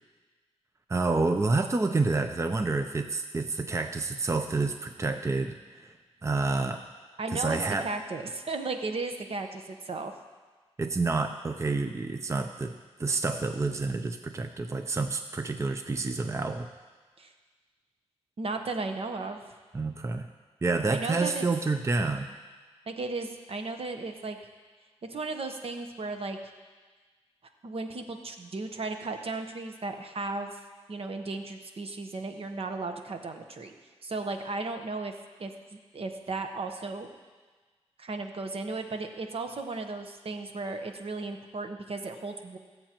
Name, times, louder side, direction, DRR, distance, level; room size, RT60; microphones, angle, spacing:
voice 1, 0.9-5.9 6.2-6.8 7.3-7.9 10.8-12.7 13.0-16.7 19.7-20.3 20.6-22.3, right 3 dB, 25° right, 7 dB, 0.6 m, -28 dB
voice 2, 7.2-10.1 17.2-17.3 18.4-19.4 20.9-21.4 22.9-24.4 25.1-26.4 27.6-30.6 30.9-33.7 34.0-35.1 35.4-37.1 38.0-42.6, right 3 dB, 65° right, 5 dB, 1.1 m, -35 dB
20.0 x 7.7 x 3.0 m, 1.4 s
cardioid pair, 65°, 11 cm